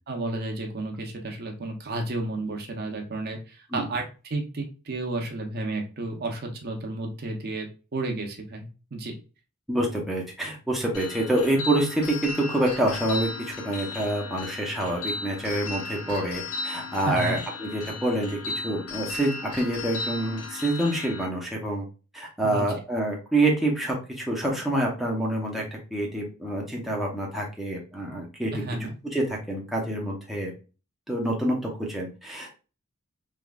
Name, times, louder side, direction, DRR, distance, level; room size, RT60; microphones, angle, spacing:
voice 1, 0.1-7.7 7.9-9.1 17.0-17.4 22.4-22.7 28.5-28.9, right 2 dB, 45° right, 3 dB, 0.7 m, -32 dB
voice 2, 9.7-18.4 18.6-21.9 22.1-28.6 29.0-30.5 31.1-32.6, right 1 dB, ahead, -2 dB, 0.7 m, -27 dB
sound 1, 10.9-21.2, left 3 dB, 85° left, 0.9 m, -36 dB
3.4 x 3.0 x 2.3 m, 0.33 s
head